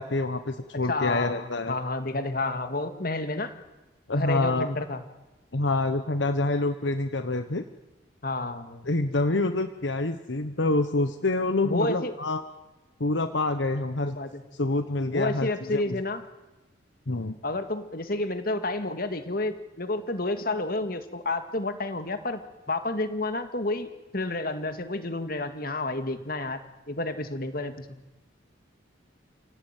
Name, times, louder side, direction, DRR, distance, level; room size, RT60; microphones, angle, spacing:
voice 1, 0.0-1.8 4.1-4.7 5.5-7.6 8.9-12.4 13.0-14.2 14.5-16.0 17.1-17.4, left 2 dB, 70° left, 9 dB, 1.2 m, -27 dB
voice 2, 0.9-3.5 4.1-5.0 8.2-8.9 11.6-12.1 14.0-14.4 15.0-16.2 17.4-22.4 22.7-26.6 26.9-28.0, left 2 dB, 50° left, 8 dB, 2.2 m, -30 dB
29.5 x 17.5 x 9.3 m, 1.1 s
head